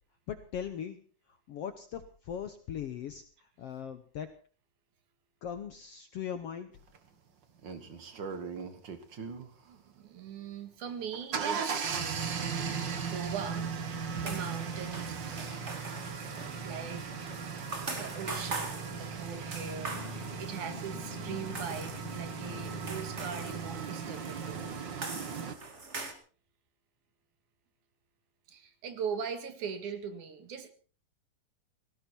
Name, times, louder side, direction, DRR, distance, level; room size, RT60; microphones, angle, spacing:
voice 1, 0.3-1.0 1.5-4.3 5.4-6.8, left 8 dB, 65° left, 10 dB, 1.6 m, -39 dB
sound 1, 6.9-7.0 7.6-9.5 10.9-25.5, right 6 dB, 45° right, 1.7 m, -38 dB
voice 2, 9.7-12.4 12.7-13.7 14.1-15.6 16.6-17.1 18.0-24.6 28.5-30.7, right 7 dB, 65° right, 9 dB, 3.0 m, -41 dB
sound 2, 12.4-24.8, left 1 dB, 50° left, 2.5 m, -46 dB
sound 3, 14.2-26.1, right 3 dB, 25° right, 1.8 m, -43 dB
18.0 x 17.5 x 4.4 m, 0.40 s
omnidirectional pair, 3.9 m